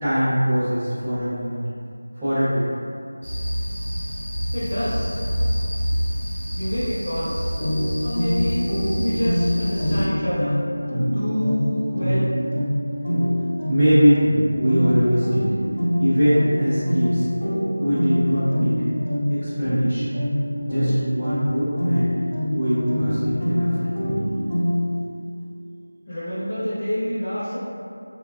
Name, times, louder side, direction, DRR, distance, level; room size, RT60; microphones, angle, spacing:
voice 1, 0.0-1.6 2.2-2.7 13.7-14.3 14.5-15.5 16.0-17.3 17.8-18.8 19.3-20.2 20.7-22.1 22.5-23.9, equal, 5° right, -18 dB, 0.3 m, -22 dB
sound 1, 3.2-10.1, equal, 65° right, 0.7 m, -27 dB
voice 2, 4.5-5.2 6.5-7.4 8.0-8.6 9.0-10.6 11.1-12.3 26.1-27.6, equal, 45° left, -11 dB, 0.7 m, -27 dB
sound 2, 7.6-25.0, equal, 90° left, 0.9 m, -24 dB
3.4 x 2.2 x 2.3 m, 2.4 s
figure-of-eight pair, 180°, 0 cm